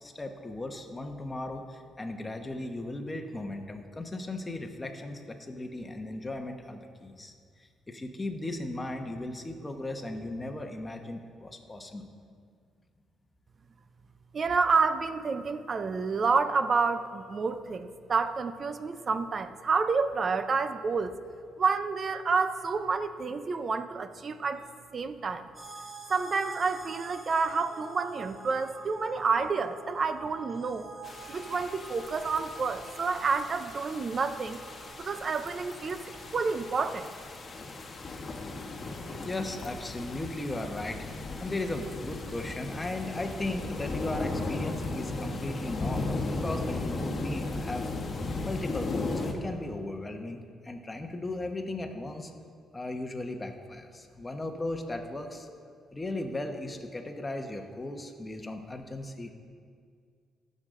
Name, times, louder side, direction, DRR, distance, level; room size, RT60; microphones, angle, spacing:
voice 1, 0.0-7.3 7.6-12.1 39.2-47.9 48.4-52.3 52.7-55.5 55.9-59.3, left 2 dB, 20° left, 4 dB, 1.1 m, -37 dB
voice 2, 14.3-21.1 21.6-24.7 24.9-25.5 26.1-30.9 31.3-34.6 35.0-36.0 36.3-37.1, right 4 dB, 45° right, 11 dB, 0.6 m, -29 dB
sound 1, 25.5-37.0, right 4 dB, 25° right, 2.3 m, -48 dB
sound 2, 31.0-49.3, left 2 dB, 40° left, 1.3 m, -36 dB
17.0 x 6.6 x 3.8 m, 2.1 s
cardioid pair, 90°, 0 cm